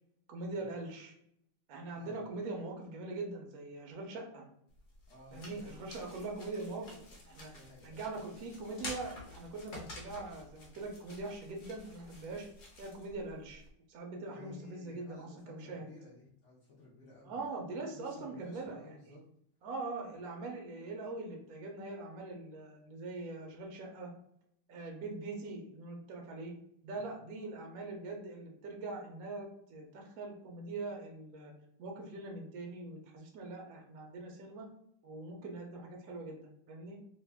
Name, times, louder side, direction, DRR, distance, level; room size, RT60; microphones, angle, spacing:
voice 1, 0.3-1.1 1.7-4.4 5.3-7.5 7.8-12.5 12.8-13.6 13.9-15.9 17.3-19.2 19.6-24.1 24.7-26.5 26.8-31.5 31.8-34.7 35.0-37.0, right 3 dB, 75° right, 1 dB, 0.8 m, -42 dB
voice 2, 1.9-2.3 5.1-6.0 7.5-8.0 14.2-17.4 17.9-19.2 26.9-27.2, left 2 dB, 85° left, -5 dB, 0.6 m, -55 dB
sound 1, 4.7-13.7, left 1 dB, 55° left, 0.8 m, -50 dB
3.3 x 2.2 x 3.4 m, 0.72 s
omnidirectional pair, 2.3 m